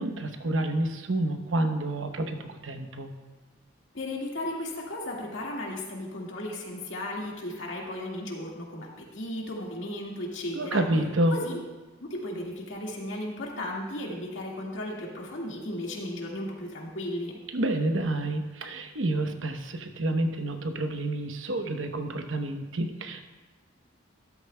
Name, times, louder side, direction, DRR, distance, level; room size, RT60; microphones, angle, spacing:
voice 1, 0.0-3.1 10.5-11.4 17.5-23.2, right 1 dB, 85° right, 6 dB, 0.9 m, -29 dB
voice 2, 3.9-10.9 11.3-11.6 12.0-17.4, left 1 dB, 80° left, -1 dB, 1.9 m, -35 dB
13.0 x 11.5 x 2.2 m, 1.2 s
head